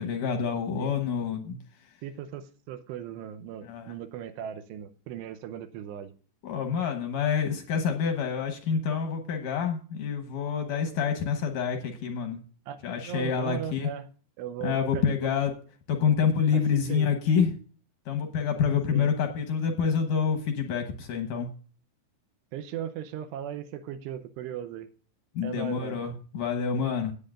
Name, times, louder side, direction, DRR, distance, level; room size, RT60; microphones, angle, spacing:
voice 1, 0.0-1.6 3.6-3.9 6.4-12.4 12.8-13.9 14.6-15.5 15.9-17.5 18.1-21.5 25.4-27.1, left 7 dB, 70° left, 5 dB, 2.0 m, -27 dB
voice 2, 2.0-6.1 12.7-14.1 14.4-15.3 16.5-17.1 18.9-19.1 22.5-24.9 25.4-26.0, right 10 dB, 80° right, 11 dB, 2.8 m, -37 dB
18.0 x 8.7 x 2.5 m, 0.40 s
omnidirectional pair, 5.1 m